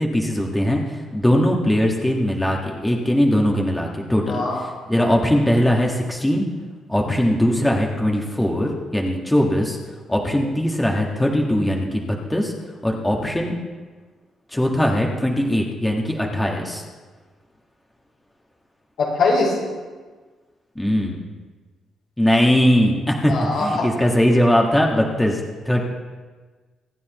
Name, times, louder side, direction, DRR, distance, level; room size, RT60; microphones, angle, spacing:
voice 1, 0.0-6.4 6.9-9.8 10.1-12.5 12.8-13.5 14.5-16.8 20.8-21.2 22.2-25.8, equal, 10° left, -1 dB, 1.7 m, -20 dB
voice 2, 4.3-4.6 19.0-19.6 23.3-23.9, left 3 dB, 75° left, -5 dB, 4.9 m, -21 dB
25.0 x 9.3 x 3.1 m, 1.4 s
cardioid pair, 90°, 0 cm